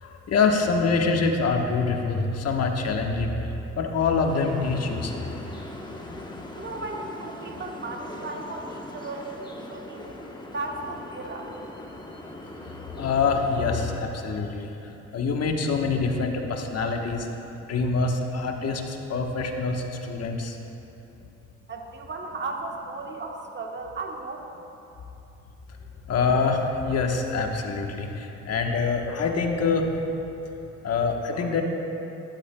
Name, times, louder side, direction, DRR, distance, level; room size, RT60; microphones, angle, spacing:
voice 1, 0.0-5.4 12.6-12.7 13.0-17.3 17.7-20.6 26.1-29.9 30.8-31.6, left 4 dB, 55° left, 3 dB, 1.2 m, -25 dB
sound 1, 4.3-14.0, left 1 dB, 15° left, 1.0 m, -40 dB
voice 2, 6.5-10.1 10.4-11.6 21.7-24.5, right 3 dB, 35° right, 2 dB, 1.2 m, -35 dB
14.5 x 11.5 x 2.2 m, 3.0 s
cardioid pair, 90°, 30 cm